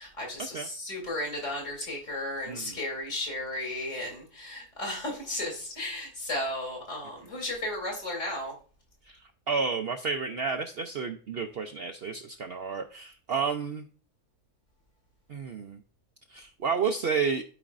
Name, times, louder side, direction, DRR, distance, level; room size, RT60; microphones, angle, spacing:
voice 1, 0.0-8.5, left 1 dB, 55° left, -1 dB, 3.2 m, -34 dB
voice 2, 2.5-2.8 9.1-9.2 9.5-13.8 15.3-15.8 16.3-17.4, right 5 dB, 60° right, 4 dB, 0.7 m, -31 dB
12.0 x 5.1 x 2.5 m, 0.39 s
omnidirectional pair, 1.5 m